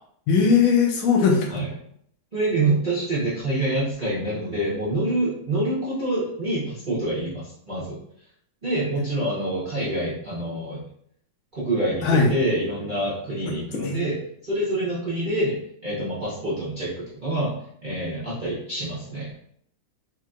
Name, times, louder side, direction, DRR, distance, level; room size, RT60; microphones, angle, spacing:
voice 1, 0.3-1.6 12.0-12.3 13.8-14.0, left 5 dB, 80° left, 1 dB, 1.5 m, -19 dB
voice 2, 2.3-8.0 8.6-10.8 11.5-14.2 14.4-15.5 15.8-17.5 17.8-19.3, right 1 dB, 40° right, -10 dB, 0.7 m, -26 dB
4.4 x 2.7 x 2.4 m, 0.68 s
omnidirectional pair, 2.2 m